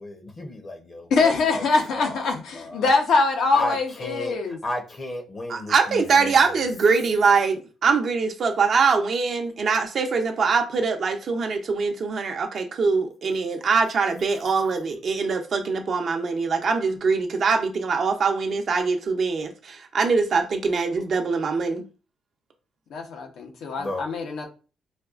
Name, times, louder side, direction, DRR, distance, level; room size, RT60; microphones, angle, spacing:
voice 1, 0.0-1.6 1.9-2.2 2.5-2.9 3.5-4.3 4.6-6.6 23.8-24.1, left 1 dB, 35° left, 0.8 m, -33 dB
voice 2, 1.1-4.6 22.9-24.5, left 3 dB, 75° left, 0.8 m, -23 dB
voice 3, 5.5-21.8, right 5 dB, 55° right, 0.6 m, -23 dB
4.1 x 2.3 x 2.4 m
cardioid pair, 90°, 0 cm